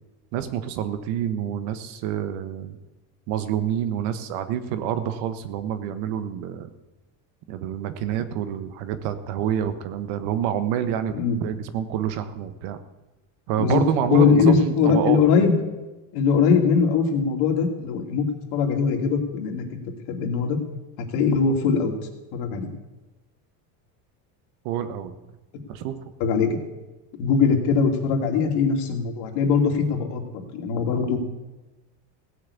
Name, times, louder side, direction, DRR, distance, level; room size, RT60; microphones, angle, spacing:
voice 1, 0.3-2.8 3.3-6.7 7.5-11.1 11.4-12.8 13.5-15.2 24.6-25.1 25.7-25.9, right 9 dB, 70° right, 11 dB, 1.4 m, -27 dB
voice 2, 14.1-15.5 16.1-18.2 18.5-19.8 20.1-20.6 21.1-21.9 22.3-22.7 26.2-26.6 27.2-31.2, left 5 dB, 65° left, 3 dB, 2.7 m, -21 dB
17.0 x 6.5 x 8.4 m, 1.1 s
supercardioid pair, 120°, 44 cm